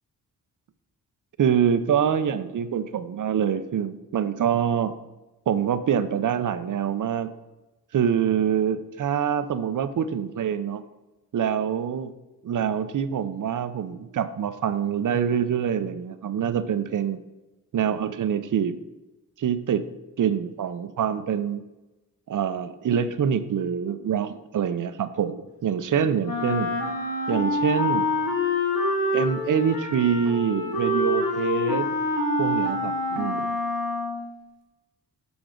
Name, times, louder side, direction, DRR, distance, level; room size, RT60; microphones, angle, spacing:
voice 1, 1.4-4.9 5.5-7.3 7.9-10.8 11.3-12.1 12.4-17.2 17.7-18.8 19.4-19.8 20.2-21.6 22.3-26.7 27.3-28.1 29.1-31.9 32.4-33.5, right 8 dB, 55° right, 11 dB, 0.6 m, -25 dB
Wind instrument woodwind instrument, 26.2-34.3, left 2 dB, 65° left, 1.7 m, -26 dB
6.9 x 6.0 x 3.8 m, 1.0 s
cardioid pair, 60°, 37 cm